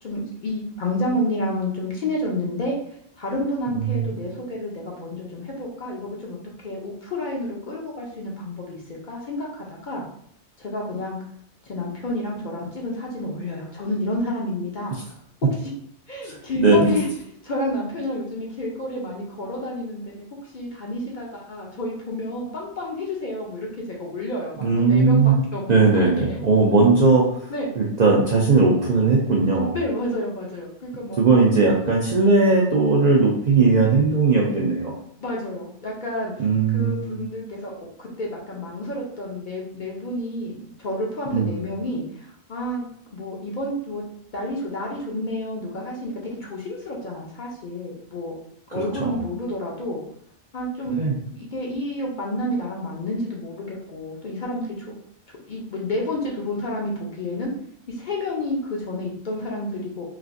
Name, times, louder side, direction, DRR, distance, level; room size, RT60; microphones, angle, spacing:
voice 1, 0.0-2.8 3.2-10.1 10.6-11.2 11.6-15.0 16.1-17.1 17.4-20.1 20.5-26.4 27.5-27.7 29.7-31.2 35.2-36.5 36.7-37.7 38.0-44.0 44.3-46.1 46.4-48.3 48.7-50.0 50.5-51.0 51.3-55.0 55.5-57.5 57.9-60.0, left 1 dB, 55° left, -2 dB, 0.6 m, -30 dB
voice 2, 3.7-4.2 16.2-16.9 24.6-25.4 25.7-27.5 27.8-29.7 31.2-34.9 36.4-37.2 41.3-41.6 48.7-49.2 50.9-51.2, right 3 dB, 60° right, -4 dB, 0.5 m, -18 dB
3.2 x 2.4 x 2.5 m, 0.68 s
omnidirectional pair, 1.2 m